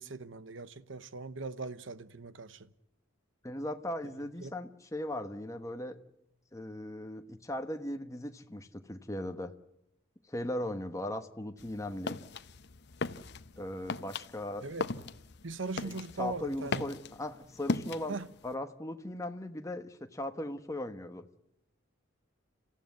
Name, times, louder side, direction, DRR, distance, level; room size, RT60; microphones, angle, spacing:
voice 1, 0.0-2.7 4.4-4.5 14.6-14.9 15.4-16.8 18.1-18.3, right 3 dB, 65° right, 0.9 m, -40 dB
voice 2, 3.4-6.0 6.5-9.5 10.3-12.2 13.6-14.7 15.8-18.2 18.4-21.3, left 1 dB, 15° left, 1.1 m, -38 dB
sound 1, 11.6-18.5, left 3 dB, 55° left, 0.8 m, -39 dB
28.0 x 15.0 x 9.4 m
head